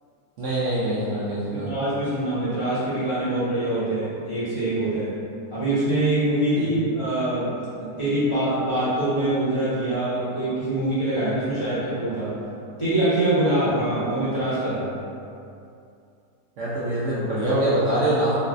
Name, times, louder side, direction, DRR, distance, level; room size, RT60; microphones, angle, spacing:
voice 1, 0.4-1.7 6.6-6.8 16.6-18.4, right 1 dB, 70° right, -9 dB, 0.7 m, -24 dB
voice 2, 1.5-5.1 5.5-12.3 12.8-14.9, right 1 dB, 25° left, -13 dB, 0.8 m, -24 dB
4.0 x 2.2 x 2.5 m, 2.6 s
omnidirectional pair, 1.8 m